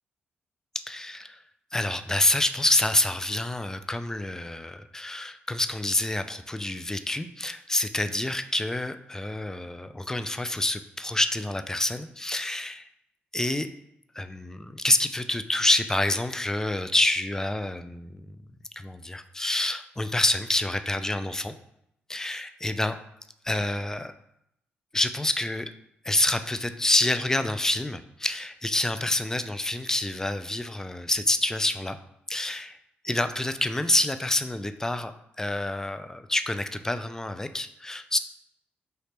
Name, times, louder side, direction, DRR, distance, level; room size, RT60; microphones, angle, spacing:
voice 1, 0.9-1.4 1.7-12.9 13.3-13.7 14.1-18.4 18.8-21.5 22.1-23.0 23.4-24.1 24.9-25.7 26.0-32.0 32.3-32.8 33.0-35.1 35.4-38.2, left 1 dB, 10° left, 10 dB, 0.3 m, -27 dB
3.2 x 2.7 x 3.3 m, 0.77 s
supercardioid pair, 60°, 4 cm